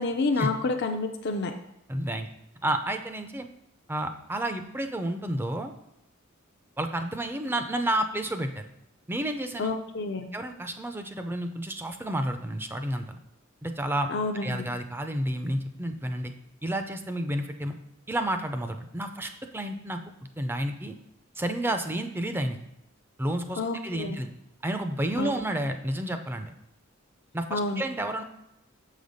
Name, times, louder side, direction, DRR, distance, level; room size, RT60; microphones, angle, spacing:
voice 1, 0.0-1.5 9.6-10.3 14.1-14.7 23.6-24.2 25.2-25.4 27.5-27.8, left 3 dB, 55° left, 5 dB, 0.5 m, -29 dB
voice 2, 1.9-2.3 2.6-3.5 3.9-5.7 6.8-8.7 9.1-9.8 10.3-13.2 13.6-14.1 14.4-16.3 16.6-17.7 18.1-21.0 21.4-22.6 23.2-24.3 24.6-26.5 27.3-28.2, right 1 dB, 10° right, 7 dB, 0.4 m, -30 dB
6.8 x 5.1 x 4.0 m, 0.84 s
head